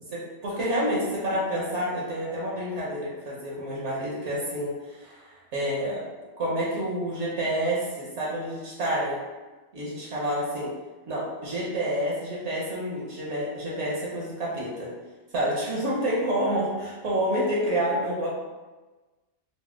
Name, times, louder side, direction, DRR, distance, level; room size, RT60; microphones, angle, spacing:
voice 1, 0.1-6.0 6.4-9.2 9.7-10.7 11.1-14.9 15.3-18.3, equal, 70° right, -5 dB, 1.0 m, -28 dB
4.1 x 2.1 x 2.3 m, 1.2 s
omnidirectional pair, 1.3 m